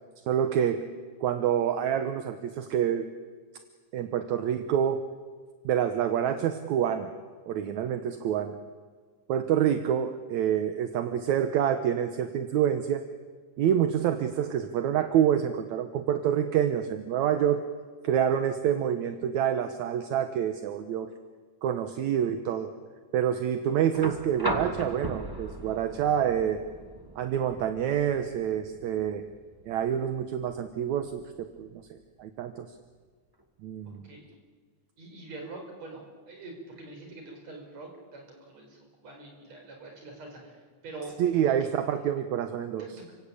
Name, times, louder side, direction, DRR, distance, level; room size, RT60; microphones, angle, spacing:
voice 1, 0.3-0.8 1.2-3.1 3.9-5.0 5.7-7.1 7.5-8.6 9.3-13.0 13.6-17.6 18.0-21.1 21.6-22.7 23.1-26.6 27.2-29.2 29.7-32.7 33.6-34.1 41.2-42.8, right 9 dB, 70° right, 8 dB, 2.2 m, -27 dB
sound 1, 23.9-32.0 33.4-33.5, right 1 dB, 30° right, 0.3 m, -38 dB
voice 2, 35.0-41.2 41.5-41.7 42.8-43.2, right 3 dB, 55° right, 2 dB, 6.4 m, -44 dB
30.0 x 17.0 x 8.5 m, 1.5 s
omnidirectional pair, 3.7 m